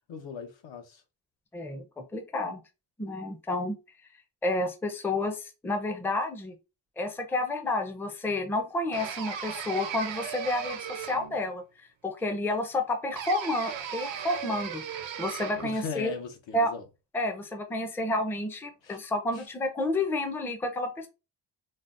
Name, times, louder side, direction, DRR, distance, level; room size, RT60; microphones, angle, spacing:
voice 1, 0.1-1.0 15.6-16.8 18.8-19.0 19.3-19.4, left 5 dB, 80° left, 0.9 m, -38 dB
voice 2, 1.5-1.9 2.1-2.6 3.0-3.8 4.4-6.5 7.0-11.6 12.0-14.8 15.2-16.1 16.5-16.7 17.1-21.1, left 2 dB, 5° left, 0.4 m, -30 dB
sound 1, 8.9-11.5 13.1-15.8, right 8 dB, 85° right, 0.7 m, -37 dB
3.9 x 2.0 x 2.4 m
cardioid pair, 105°, 44 cm